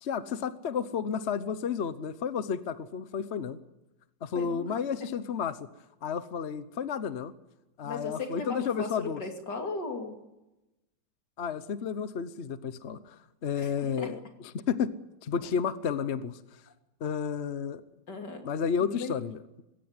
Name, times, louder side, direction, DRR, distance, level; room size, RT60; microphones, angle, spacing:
voice 1, 0.0-3.6 4.2-5.6 6.0-7.3 7.8-9.2 11.4-14.2 14.5-14.9 15.2-16.4 17.0-17.8 18.4-19.6, left 7 dB, 45° left, 13 dB, 1.0 m, -32 dB
voice 2, 4.3-4.6 5.0-5.1 7.8-10.2 13.6-14.2 18.1-18.5 18.8-19.1, left 3 dB, 65° left, 4 dB, 3.3 m, -37 dB
21.0 x 17.0 x 9.6 m, 0.97 s
omnidirectional pair, 2.0 m